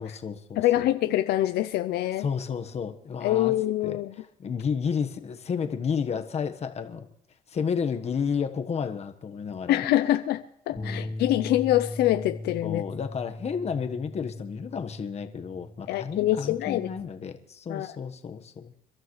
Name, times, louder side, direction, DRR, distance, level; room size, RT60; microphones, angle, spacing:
voice 1, 0.0-0.9 2.2-3.5 3.8-4.0 4.4-7.1 7.5-9.9 10.7-11.1 12.6-18.7, left 6 dB, 40° left, 7 dB, 1.3 m, -31 dB
voice 2, 0.6-2.3 3.2-4.1 9.7-12.8 15.9-16.9 17.7-18.0, left 14 dB, 75° left, 10 dB, 0.6 m, -25 dB
Bass guitar, 10.8-17.0, left 1 dB, 20° left, 1.2 m, -39 dB
29.5 x 12.5 x 3.2 m, 0.69 s
cardioid pair, 110°, 17 cm